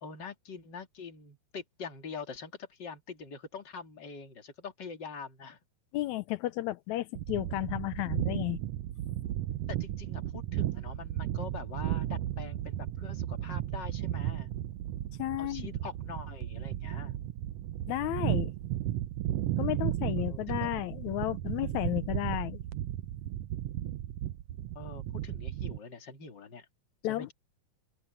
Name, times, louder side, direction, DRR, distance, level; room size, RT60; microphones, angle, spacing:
voice 1, 0.0-5.6 9.7-14.5 15.4-17.2 20.2-20.7 24.7-26.7 27.1-27.3, left 5 dB, 35° left, 2.8 m, -44 dB
voice 2, 5.9-8.6 15.2-15.7 17.9-18.5 19.6-22.6 27.0-27.3, left 16 dB, 75° left, 1.9 m, -33 dB
sound 1, 7.2-25.8, right 13 dB, 75° right, 1.5 m, -34 dB
omnidirectional pair, 3.6 m